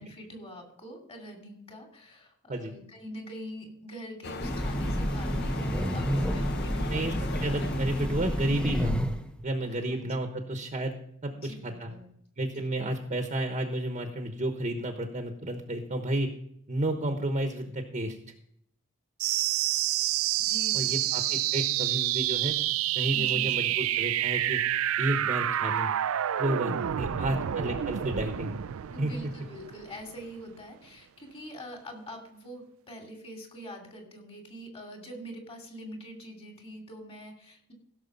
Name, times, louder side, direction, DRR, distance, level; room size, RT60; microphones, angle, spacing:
voice 1, 0.0-7.0 9.6-10.1 11.3-12.1 20.4-21.4 23.1-23.7 26.6-27.3 28.9-37.7, equal, 30° left, 2 dB, 2.6 m, -44 dB
sound 1, 4.2-9.1, left 3 dB, 50° left, 0.7 m, -39 dB
Train, 4.4-9.3, equal, 5° left, 0.8 m, -30 dB
voice 2, 7.4-9.0 9.4-10.9 11.2-11.9 12.4-16.3 16.7-18.2 20.7-22.5 22.9-24.6 25.0-25.9 26.4-28.6 29.0-29.1, right 1 dB, 35° right, 5 dB, 1.0 m, -31 dB
sound 2, 19.2-30.2, right 12 dB, 85° right, 0.4 m, -28 dB
16.0 x 6.6 x 5.3 m, 0.70 s
head